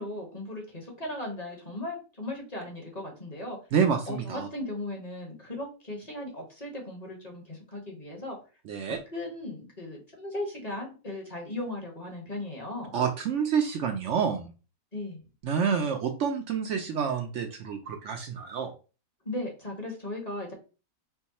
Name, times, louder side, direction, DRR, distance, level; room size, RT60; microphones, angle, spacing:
voice 1, 0.0-3.6 4.1-8.4 9.1-13.0 14.9-15.2 19.2-20.5, left 1 dB, 30° left, 0 dB, 1.2 m, -37 dB
voice 2, 3.7-4.5 8.7-9.0 12.9-14.5 15.4-18.7, right 7 dB, 65° right, 5 dB, 0.8 m, -28 dB
4.6 x 2.2 x 4.1 m, 0.33 s
omnidirectional pair, 1.5 m